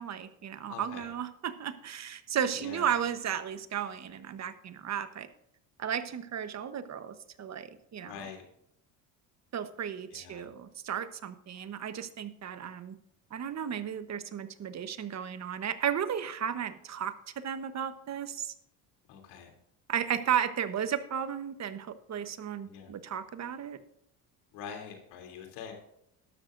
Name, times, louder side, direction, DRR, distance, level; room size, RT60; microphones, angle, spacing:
voice 1, 0.0-5.3 5.8-8.3 9.5-13.0 13.3-18.5 19.9-23.8, right 8 dB, 45° right, 11 dB, 1.1 m, -34 dB
voice 2, 0.7-1.1 2.6-2.9 8.0-8.4 10.1-10.5 19.1-19.5 22.7-22.9 24.5-25.7, left 7 dB, 90° left, 3 dB, 3.2 m, -44 dB
12.5 x 12.5 x 2.6 m, 0.75 s
cardioid pair, 105°, 39 cm